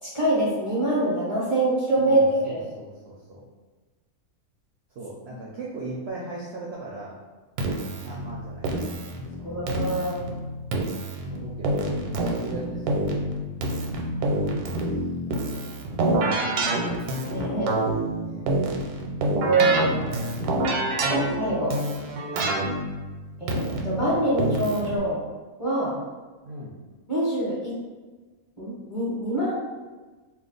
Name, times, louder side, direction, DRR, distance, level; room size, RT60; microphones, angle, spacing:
voice 1, 0.0-2.7 9.4-10.3 12.5-12.6 17.3-17.7 19.3-20.1 21.1-21.8 23.4-25.2 25.6-26.0 27.1-27.7 28.6-29.5, right 1 dB, 25° left, -9 dB, 0.8 m, -25 dB
voice 2, 2.0-3.4 4.9-7.2 7.7-9.7 11.3-13.1 14.2-14.5 15.6-16.4 18.2-18.4 22.3-22.6 26.4-26.8, right 2 dB, 65° right, -4 dB, 0.6 m, -39 dB
Keyboard (musical), 7.6-25.0, right 2 dB, 85° right, 1.1 m, -27 dB
2.5 x 2.3 x 3.8 m, 1.3 s
omnidirectional pair, 1.5 m